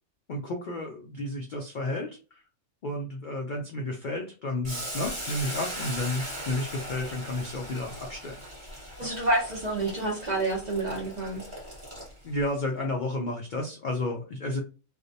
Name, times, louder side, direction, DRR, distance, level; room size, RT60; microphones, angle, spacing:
voice 1, 0.3-2.2 2.8-8.4 8.7-8.8 12.2-14.6, left 2 dB, 80° left, 0 dB, 0.4 m, -32 dB
Boiling, 4.6-12.4, right 1 dB, 25° right, 0.8 m, -39 dB
voice 2, 9.0-11.4, right 2 dB, 50° right, -2 dB, 0.5 m, -28 dB
2.5 x 2.0 x 2.6 m, 0.33 s
omnidirectional pair, 1.4 m